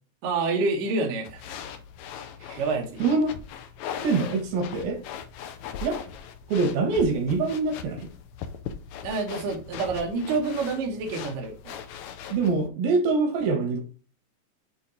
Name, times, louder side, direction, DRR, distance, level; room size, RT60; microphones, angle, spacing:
voice 1, 0.2-1.6 2.6-3.0 9.0-11.8, right 3 dB, 70° right, 1 dB, 2.8 m, -28 dB
sound 1, 1.2-12.7, left 8 dB, 75° left, 1.7 m, -40 dB
voice 2, 3.0-3.4 4.0-5.0 5.8-6.0 6.5-8.1 12.3-13.8, right 4 dB, 90° right, 3 dB, 3.2 m, -24 dB
8.3 x 3.3 x 4.1 m, 0.38 s
omnidirectional pair, 4.0 m